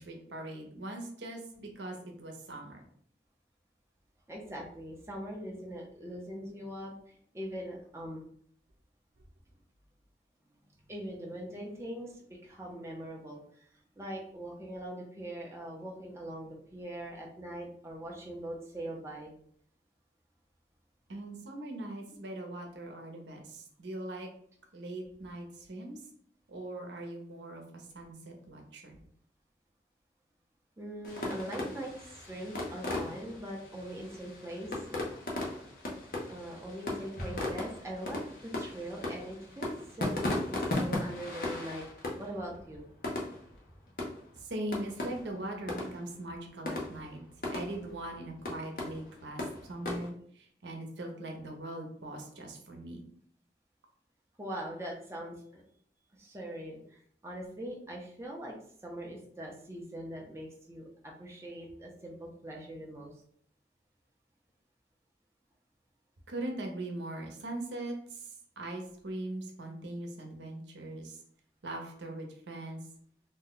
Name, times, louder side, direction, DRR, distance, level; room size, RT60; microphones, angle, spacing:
voice 1, 0.0-2.8 21.1-24.3 24.7-26.0 26.5-29.0 44.4-47.2 47.5-53.0 66.3-71.2 71.6-72.8, right 1 dB, 90° right, 2 dB, 0.7 m, -41 dB
voice 2, 4.3-8.2 10.9-13.7 14.0-19.3 30.8-31.9 32.2-34.7 36.3-40.2 40.5-41.8 42.2-42.9 54.4-55.6 56.1-58.5 58.8-63.1, right 1 dB, 15° right, -1 dB, 0.5 m, -42 dB
sound 1, 31.0-50.1, left 2 dB, 50° left, 0.7 m, -37 dB
2.7 x 2.1 x 3.8 m, 0.62 s
head